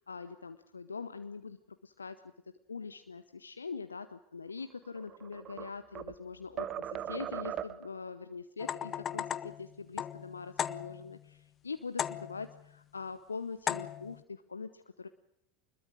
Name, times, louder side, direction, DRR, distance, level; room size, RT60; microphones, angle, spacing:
voice 1, 0.0-2.3 2.7-15.1, left 4 dB, 80° left, 10 dB, 0.9 m, -43 dB
sound 1, 4.8-6.2 6.6-8.0, right 10 dB, 35° right, 1.0 m, -39 dB
sound 2, 8.6-11.2 12.0-12.6 13.7-14.2, left 9 dB, 30° left, 0.8 m, -37 dB
26.0 x 21.5 x 6.6 m, 0.75 s
figure-of-eight pair, 80°, 0 cm